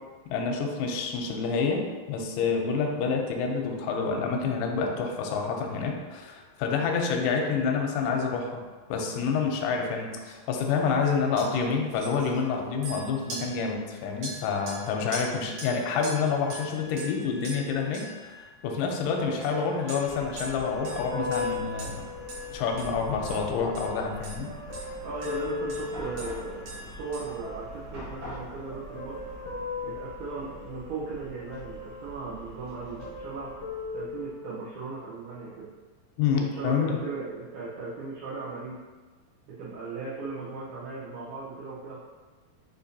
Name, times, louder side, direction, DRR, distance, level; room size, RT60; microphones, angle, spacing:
voice 1, 0.3-8.6 8.9-22.1 22.5-24.5 36.2-37.0, left 5 dB, 80° left, 2 dB, 2.0 m, -28 dB
sound 1, 10.3-10.6 10.8-11.1 11.4-11.5 11.9-19.0 19.4-27.3, right 1 dB, 70° right, 2.8 m, -43 dB
sound 2, 19.1-22.7 23.2-26.7 27.4-28.1 28.7-31.0 31.5-32.5 32.7-34.8 35.4-35.5, left 4 dB, 60° left, 0.9 m, -38 dB
Chatter / Car passing by / Traffic noise roadway noise, 20.0-34.3, equal, 55° right, 1.4 m, -45 dB
voice 2, 25.0-29.2 29.8-33.5 33.9-35.7 36.3-38.8 39.5-42.1, right 4 dB, 85° right, -10 dB, 2.7 m, -37 dB
6.5 x 2.7 x 2.7 m, 1.4 s
omnidirectional pair, 4.3 m